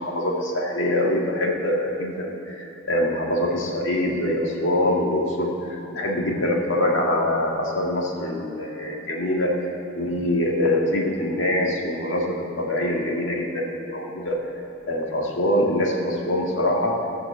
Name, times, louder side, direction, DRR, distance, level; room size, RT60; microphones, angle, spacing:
voice 1, 0.0-9.7 9.9-14.4 14.9-17.0, left 1 dB, 75° left, -1 dB, 1.8 m, -24 dB
14.5 x 6.0 x 7.9 m, 2.9 s
head